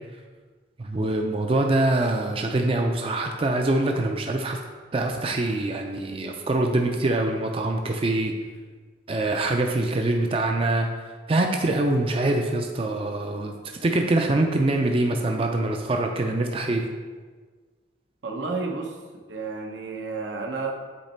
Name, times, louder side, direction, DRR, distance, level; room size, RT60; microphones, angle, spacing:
voice 1, 0.8-4.6 4.9-8.3 9.1-10.9 11.3-13.5 13.8-16.9, right 2 dB, 30° right, 3 dB, 0.4 m, -24 dB
voice 2, 18.2-19.0 19.3-20.7, right 3 dB, 85° right, 1 dB, 0.9 m, -31 dB
8.3 x 3.2 x 4.3 m, 1.4 s
head